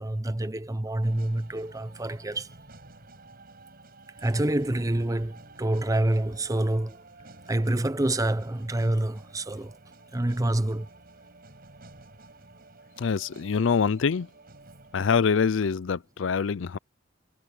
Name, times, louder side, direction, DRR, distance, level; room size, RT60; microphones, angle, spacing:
voice 1, 0.0-2.5 4.2-7.0 7.5-9.8 10.1-10.9, right 1 dB, 15° right, 0.7 m, -27 dB
sound 1, 1.0-16.2, right 2 dB, 50° right, 6.7 m, -52 dB
voice 2, 13.0-14.3 14.9-16.8, left 6 dB, 70° left, 0.5 m, -25 dB
head